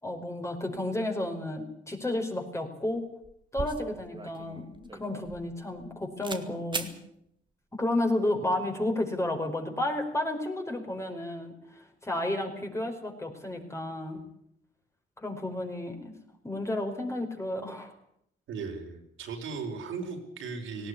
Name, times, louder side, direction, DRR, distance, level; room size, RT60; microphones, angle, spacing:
voice 1, 0.0-3.1 3.5-6.9 7.7-14.2 15.2-16.1 16.4-17.9, left 1 dB, 15° left, 4 dB, 4.8 m, -32 dB
sound 1, 3.0-3.1 3.2-5.9 6.2-6.4 6.7-6.9, right 3 dB, 25° right, 2.3 m, -38 dB
voice 2, 18.5-20.9, right 5 dB, 80° right, 2 dB, 5.0 m, -37 dB
18.5 x 17.0 x 9.9 m, 0.74 s
cardioid pair, 90°, 20 cm